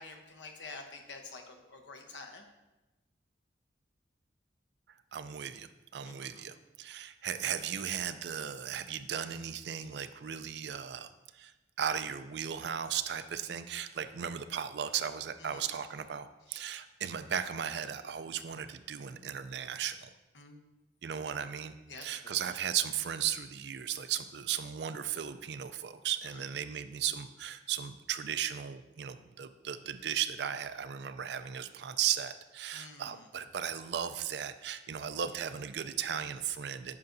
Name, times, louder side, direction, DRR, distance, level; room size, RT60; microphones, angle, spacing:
voice 1, 0.0-2.4 6.0-6.4 15.4-15.6 20.3-20.6 21.9-22.4 32.7-33.1, left 3 dB, 85° left, 4 dB, 0.9 m, -48 dB
voice 2, 5.1-20.1 21.0-21.7 22.0-37.0, right 9 dB, 70° right, 11 dB, 0.4 m, -36 dB
9.4 x 5.8 x 2.6 m, 1.1 s
head